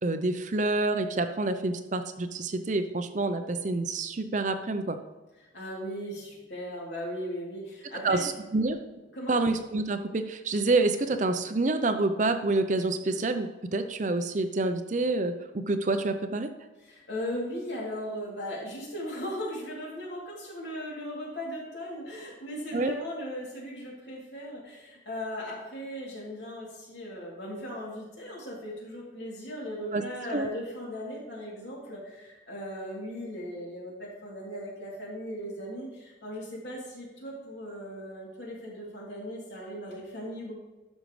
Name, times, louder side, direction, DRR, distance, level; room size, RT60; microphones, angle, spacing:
voice 1, 0.0-5.0 7.9-8.8 9.3-16.5 22.7-22.9 29.9-30.0 30.3-30.5, right 2 dB, 40° right, 8 dB, 0.5 m, -27 dB
voice 2, 5.5-8.2 9.1-9.4 16.8-40.5, equal, 70° left, -4 dB, 3.0 m, -38 dB
12.0 x 6.4 x 3.2 m, 1.1 s
head